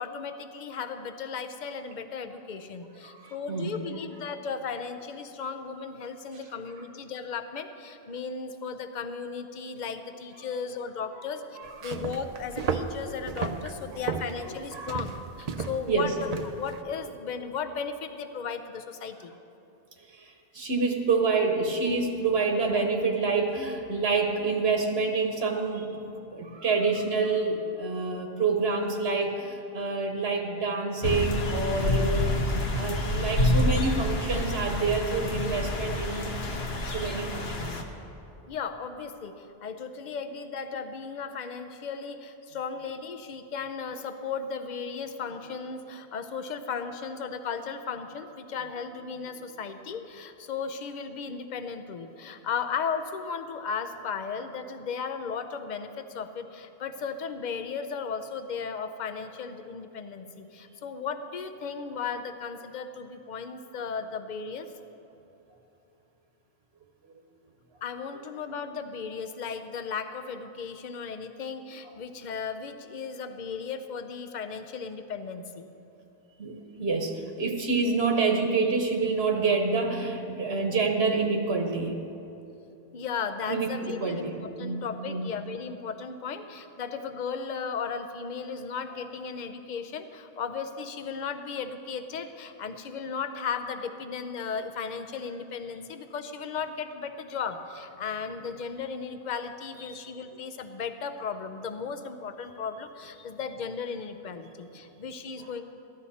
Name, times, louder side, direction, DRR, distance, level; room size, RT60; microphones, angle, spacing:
voice 1, 0.0-11.4 11.8-19.4 38.5-64.7 67.8-75.7 82.9-105.6, left 6 dB, 50° left, 9 dB, 0.7 m, -35 dB
voice 2, 3.0-3.8 13.9-14.0 14.7-14.9 15.9-16.1 20.1-26.0 26.3-32.3 32.7-36.3 36.7-37.8 76.4-82.1 83.5-85.2 99.8-100.0, right 4 dB, 85° right, 3 dB, 1.3 m, -27 dB
sound 1, 11.7-16.8, right 5 dB, 45° right, 0.6 m, -34 dB
sound 2, 31.0-37.8, left 1 dB, 75° left, 1.2 m, -28 dB
14.5 x 11.5 x 4.2 m, 2.8 s
omnidirectional pair, 1.0 m